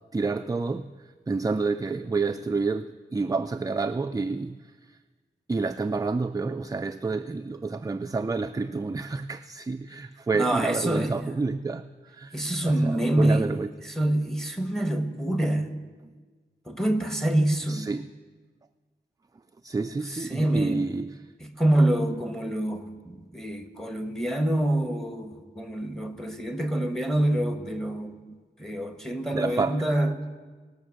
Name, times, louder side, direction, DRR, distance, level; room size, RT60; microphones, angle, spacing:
voice 1, 0.1-5.0 5.5-13.7 17.7-18.1 19.6-21.2 29.3-29.8, right 4 dB, 20° right, 8 dB, 0.3 m, -29 dB
voice 2, 10.3-11.3 12.3-13.5 13.8-15.7 16.7-17.9 20.1-20.9 21.4-30.2, right 1 dB, ahead, 7 dB, 1.1 m, -26 dB
19.5 x 6.6 x 6.3 m, 1.4 s
wide cardioid pair, 85°, 19 cm